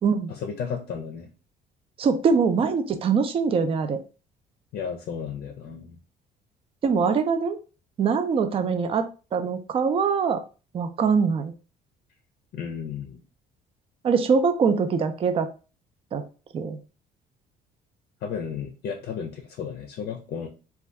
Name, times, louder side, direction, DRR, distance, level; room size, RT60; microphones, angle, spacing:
voice 1, 0.3-1.3 4.7-6.0 12.5-13.2 18.2-20.5, left 7 dB, 70° left, 4 dB, 0.5 m, -33 dB
voice 2, 2.0-4.0 6.8-7.6 8.0-10.4 10.7-11.5 14.0-15.5 16.1-16.2 16.5-16.8, right 5 dB, 35° right, 8 dB, 0.4 m, -23 dB
2.6 x 2.3 x 3.3 m, 0.34 s
cardioid pair, 110°, 17 cm